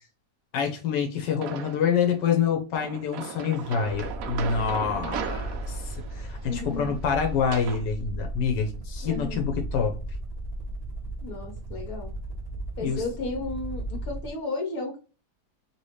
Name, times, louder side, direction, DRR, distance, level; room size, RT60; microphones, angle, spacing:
voice 1, 0.5-9.9 12.8-13.0, left 7 dB, 90° left, 1.4 m, -27 dB
sound 1, 1.4-2.0 2.8-7.8, right 7 dB, 70° right, 0.9 m, -37 dB
sound 2, 3.8-14.4, right 1 dB, 40° right, 0.5 m, -36 dB
voice 2, 6.4-6.9 9.0-9.5 11.2-12.1 12.8-15.0, left 3 dB, 60° left, 1.7 m, -34 dB
3.3 x 2.8 x 3.1 m
omnidirectional pair, 1.8 m